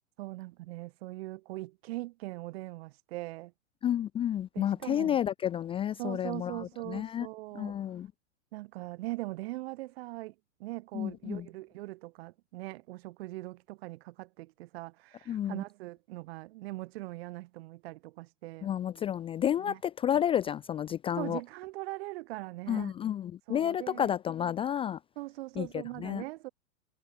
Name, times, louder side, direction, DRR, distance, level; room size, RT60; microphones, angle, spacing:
voice 1, 0.2-3.5 4.5-5.2 6.0-7.9 8.5-10.3 10.6-18.7 19.6-19.8 21.2-22.9 23.5-24.1 25.2-26.5, right 19 dB, 50° right, 3.2 m, -41 dB
voice 2, 3.8-7.3 7.5-8.1 10.9-11.5 15.3-15.6 18.6-21.4 22.7-25.0 25.6-26.2, left 10 dB, 15° left, 0.5 m, -31 dB
figure-of-eight pair, 100°, 38 cm